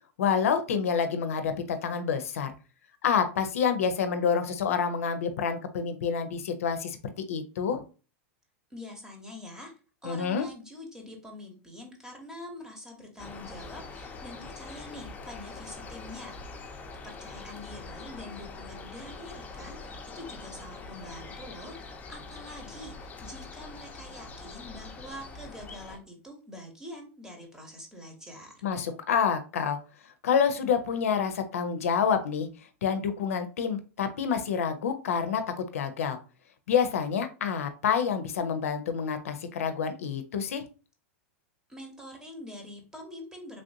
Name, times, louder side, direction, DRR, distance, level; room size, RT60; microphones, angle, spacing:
voice 1, 0.2-2.5 3.0-7.0 7.3-7.8 10.0-10.5 28.6-29.8 30.2-32.5 32.8-36.2 36.7-40.6, left 7 dB, 85° left, 8 dB, 0.5 m, -28 dB
voice 2, 8.7-9.7 10.0-28.6 41.7-43.6, left 1 dB, 10° right, 2 dB, 1.0 m, -45 dB
sound 1, 13.2-26.0, left 3 dB, 20° left, 0.6 m, -43 dB
3.2 x 2.5 x 2.6 m, 0.34 s
hypercardioid pair, 115°, 8 cm